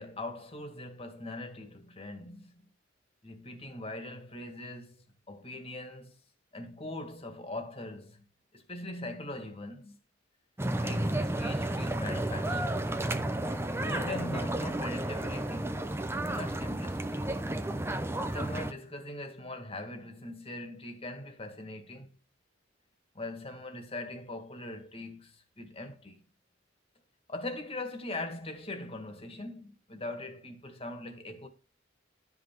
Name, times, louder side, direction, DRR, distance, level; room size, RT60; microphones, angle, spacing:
voice 1, 0.0-2.7 3.2-5.0 5.3-6.1 6.5-8.3 8.5-10.0 10.8-12.8 13.7-15.8 16.3-17.4 18.3-22.1 23.1-26.2 27.3-31.5, left 2 dB, 30° left, 2.0 m, -41 dB
sound 1, 10.6-18.7, right 1 dB, 15° right, 0.8 m, -32 dB
12.0 x 5.9 x 4.7 m
head